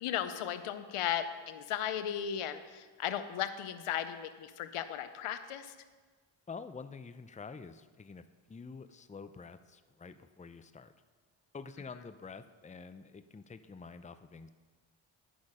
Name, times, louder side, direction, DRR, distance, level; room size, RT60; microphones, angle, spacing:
voice 1, 0.0-5.7, left 10 dB, 90° left, 11 dB, 0.7 m, -36 dB
voice 2, 6.5-10.9 11.5-14.5, left 5 dB, 15° left, 11 dB, 0.5 m, -48 dB
11.0 x 6.3 x 4.9 m, 1.4 s
cardioid pair, 45°, 50 cm